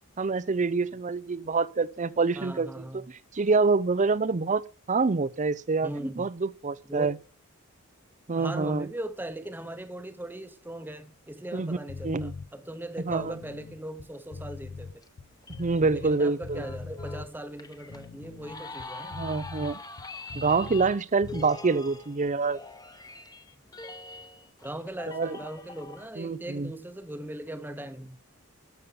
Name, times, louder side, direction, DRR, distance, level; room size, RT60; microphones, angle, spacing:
voice 1, 0.2-3.1 3.3-4.6 4.9-5.9 6.2-7.1 8.3-8.9 11.5-11.8 12.0-12.3 13.1-13.4 15.6-16.6 19.1-19.8 20.3-22.6 25.1-25.4 26.2-26.7, right 4 dB, 35° right, 0.5 m, -26 dB
voice 2, 2.4-3.1 5.8-6.3 6.9-7.1 8.4-15.0 15.9-19.2 24.6-28.2, right 1 dB, 10° right, 0.9 m, -39 dB
sound 1, 11.9-12.5 13.0-16.2 16.4-17.3 17.8-21.0 21.2-21.5, left 4 dB, 70° left, 0.6 m, -42 dB
sound 2, 15.0-26.1, left 3 dB, 15° left, 1.0 m, -44 dB
12.5 x 7.0 x 6.8 m
head